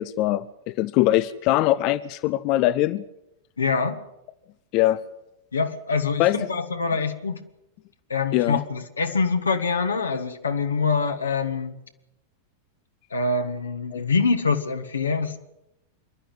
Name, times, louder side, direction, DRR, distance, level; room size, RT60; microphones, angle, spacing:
voice 1, 0.0-3.0 4.7-5.0 6.2-6.4 8.3-8.6 13.9-14.1, left 15 dB, 40° left, 16 dB, 0.7 m, -22 dB
voice 2, 3.6-4.0 5.5-7.4 8.1-11.7 13.1-15.4, left 4 dB, 75° left, 5 dB, 1.6 m, -25 dB
27.0 x 12.0 x 9.3 m, 0.87 s
figure-of-eight pair, 90°, 0 cm